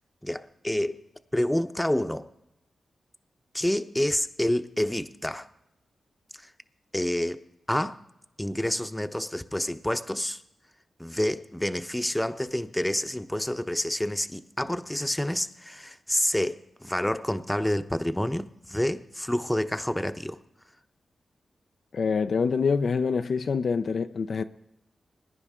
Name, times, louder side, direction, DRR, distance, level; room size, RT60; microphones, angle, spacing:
voice 1, 0.2-1.0 1.3-2.3 3.5-5.5 6.3-6.5 6.9-8.0 8.4-10.4 11.0-20.4, left 1 dB, 10° left, 0.8 m, -28 dB
voice 2, 21.9-24.4, left 5 dB, 70° left, 0.5 m, -25 dB
21.0 x 9.8 x 3.7 m
supercardioid pair, 40°, 0 cm